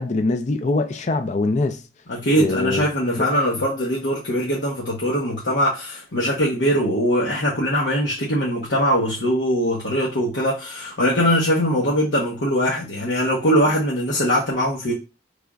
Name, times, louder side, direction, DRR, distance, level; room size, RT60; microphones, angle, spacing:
voice 1, 0.0-1.9 2.3-2.8 3.2-3.3, left 3 dB, 40° left, 0.4 m, -23 dB
voice 2, 2.1-14.9, equal, 75° left, 1.0 m, -21 dB
5.1 x 3.3 x 2.3 m
head